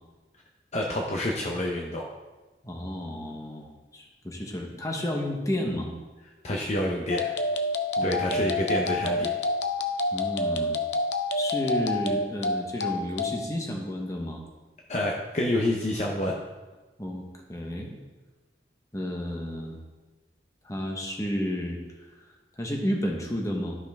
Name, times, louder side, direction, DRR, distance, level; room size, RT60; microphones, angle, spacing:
voice 1, 0.7-2.0 6.4-7.3 8.0-9.3 14.9-16.3, left 1 dB, 40° left, -1 dB, 0.7 m, -28 dB
voice 2, 2.6-5.9 8.0-8.5 10.1-10.8 11.3-14.4 17.0-17.2 17.5-17.9 18.9-19.8 20.6-21.8 22.6-23.8, equal, 20° left, 1 dB, 1.1 m, -31 dB
sound 1, 7.1-13.4, left 2 dB, 80° left, 0.7 m, -28 dB
12.0 x 5.5 x 3.5 m, 1.2 s
head